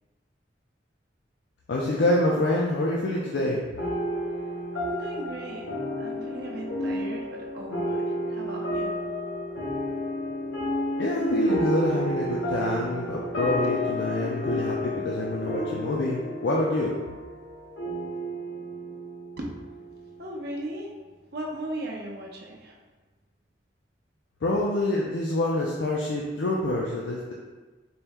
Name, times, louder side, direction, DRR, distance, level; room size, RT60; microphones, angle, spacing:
voice 1, 1.7-3.7 11.0-16.9 24.4-27.3, left 1 dB, 70° left, -3 dB, 0.4 m, -26 dB
sound 1, 3.8-20.6, equal, 90° left, 0.9 m, -31 dB
voice 2, 4.8-8.9 19.4-19.5 20.2-21.0 21.3-22.8, right 1 dB, 60° right, -1 dB, 0.6 m, -37 dB
4.3 x 2.1 x 3.4 m, 1.3 s
head